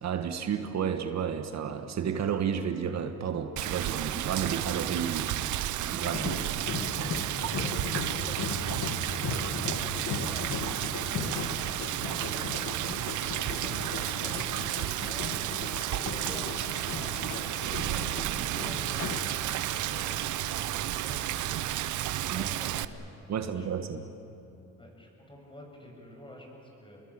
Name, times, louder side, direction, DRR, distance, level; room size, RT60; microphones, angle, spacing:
voice 1, 0.0-5.6 5.9-6.4 22.3-22.4 23.3-24.0, right 7 dB, 60° right, 8 dB, 1.5 m, -31 dB
Rain, 3.6-22.8, right 13 dB, 80° right, 0.8 m, -32 dB
sound 1, 6.0-19.6 19.9-20.2, left 5 dB, 60° left, 1.8 m, -37 dB
voice 2, 6.3-12.7 13.1-21.6 22.3-23.0 23.4-23.7 24.8-27.0, equal, 15° left, 0 dB, 7.5 m, -48 dB
27.5 x 22.0 x 8.7 m, 2.9 s
cardioid pair, 90°, 30 cm